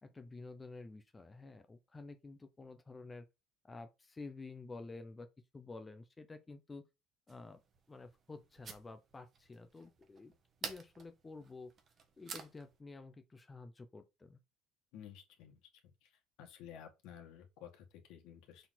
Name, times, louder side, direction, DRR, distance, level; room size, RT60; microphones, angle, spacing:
voice 1, 0.0-3.3 3.6-5.3 5.5-6.9 7.3-7.6 7.9-10.3 10.6-11.7 12.2-14.4, left 3 dB, 15° left, 0.5 m, -50 dB
sound 1, 7.3-12.8, right 5 dB, 30° right, 1.1 m, -50 dB
voice 2, 14.9-15.6 16.0-16.1 16.4-18.7, left 9 dB, 65° left, 1.8 m, -53 dB
6.7 x 4.0 x 3.9 m
cardioid pair, 165°, 0 cm